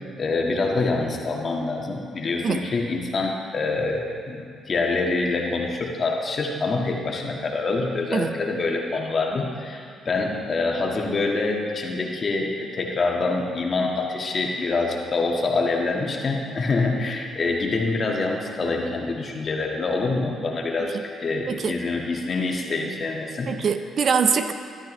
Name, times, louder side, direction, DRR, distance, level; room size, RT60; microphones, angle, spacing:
voice 1, 0.2-23.5, left 3 dB, 40° left, 0 dB, 1.6 m, -26 dB
voice 2, 21.5-21.8 23.4-24.5, right 6 dB, 50° right, 9 dB, 0.6 m, -23 dB
13.5 x 12.0 x 3.2 m, 2.2 s
cardioid pair, 90°, 0 cm